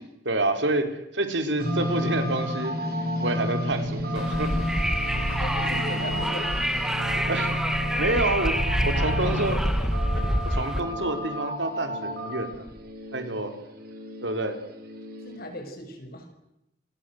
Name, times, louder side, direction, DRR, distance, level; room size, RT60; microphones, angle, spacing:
voice 1, 0.2-0.9 1.1-2.7 3.2-4.5 7.3-7.7 8.0-8.5 8.8-9.6 10.6-12.7 13.1-13.5 14.2-14.6, right 2 dB, 90° right, 7 dB, 4.2 m, -27 dB
sound 1, 1.6-15.4, equal, 55° right, 5.9 m, -31 dB
Wind, 4.1-10.8, equal, 5° right, 1.9 m, -27 dB
voice 2, 5.4-6.7 9.0-10.3 15.2-16.3, equal, 55° left, 5 dB, 7.2 m, -38 dB
29.0 x 23.5 x 8.0 m, 0.85 s
head